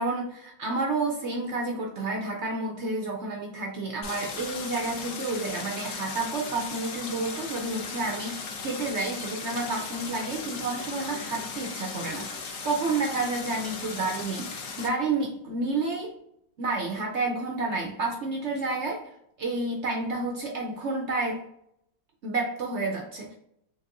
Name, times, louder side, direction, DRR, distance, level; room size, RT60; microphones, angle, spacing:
voice 1, 0.0-16.1 16.6-19.0 19.4-21.4 22.2-23.3, right 3 dB, 75° right, 0 dB, 0.6 m, -30 dB
Stream, 4.0-14.9, left 4 dB, 60° left, 0.9 m, -37 dB
4.4 x 3.6 x 2.5 m, 0.76 s
omnidirectional pair, 2.1 m